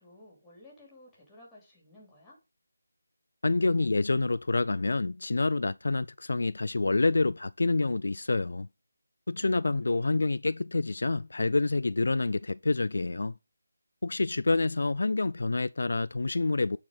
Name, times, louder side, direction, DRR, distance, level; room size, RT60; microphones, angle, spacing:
voice 1, 0.0-2.4 9.4-10.4, left 1 dB, 5° left, 2.9 m, -55 dB
voice 2, 3.4-8.7 9.3-13.3 14.0-16.8, left 3 dB, 65° left, 0.3 m, -27 dB
8.4 x 4.4 x 5.2 m
figure-of-eight pair, 165°, 0 cm